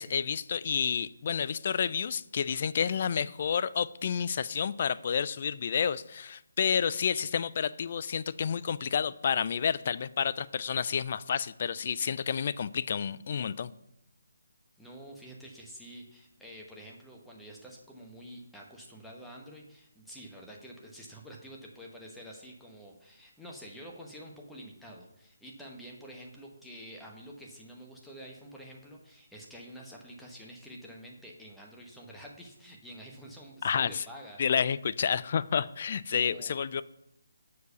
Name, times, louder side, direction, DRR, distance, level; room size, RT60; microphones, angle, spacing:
voice 1, 0.0-13.7 33.6-34.1 34.4-36.8, left 7 dB, 45° left, 17 dB, 0.3 m, -30 dB
voice 2, 14.8-34.4 36.1-36.6, equal, ahead, -2 dB, 1.1 m, -48 dB
6.3 x 4.8 x 6.7 m, 0.84 s
figure-of-eight pair, 155°, 0 cm